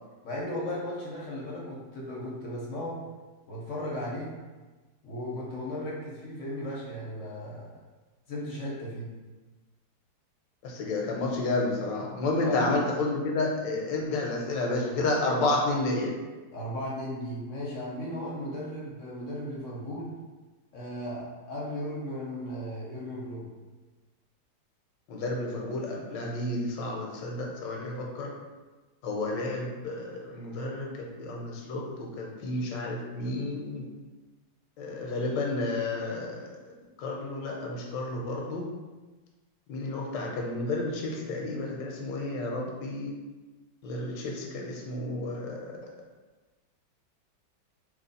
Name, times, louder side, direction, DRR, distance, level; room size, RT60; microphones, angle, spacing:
voice 1, 0.2-3.0 3.5-4.3 5.0-7.7 8.3-9.1 12.4-12.8 16.5-20.1 20.7-23.5, left 1 dB, 60° left, -4 dB, 0.8 m, -36 dB
voice 2, 10.6-16.2 25.1-28.3 29.0-33.8 34.8-36.5 37.0-38.7 39.7-43.1 43.8-45.6, left 2 dB, 80° left, -1 dB, 1.3 m, -31 dB
3.0 x 3.0 x 4.0 m, 1.2 s
omnidirectional pair, 2.0 m